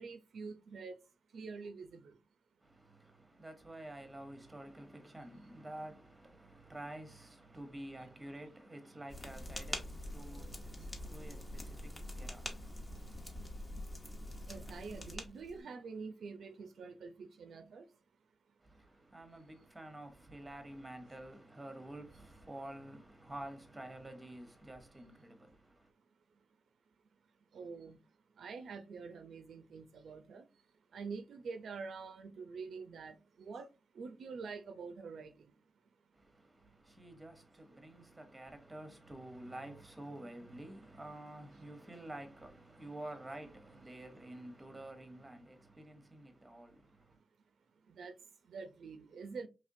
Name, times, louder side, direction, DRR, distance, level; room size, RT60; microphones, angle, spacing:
voice 1, 0.0-2.2 6.5-6.6 10.8-10.9 14.5-18.0 27.5-35.6 36.6-36.8 47.1-47.2 47.9-49.5, right 5 dB, 70° right, 0.5 m, -47 dB
voice 2, 2.6-13.2 18.6-25.9 36.1-47.2, right 1 dB, 10° right, 0.9 m, -50 dB
sound 1, 9.1-15.6, left 1 dB, 20° left, 0.9 m, -45 dB
5.0 x 3.3 x 2.6 m
wide cardioid pair, 170°, 0 cm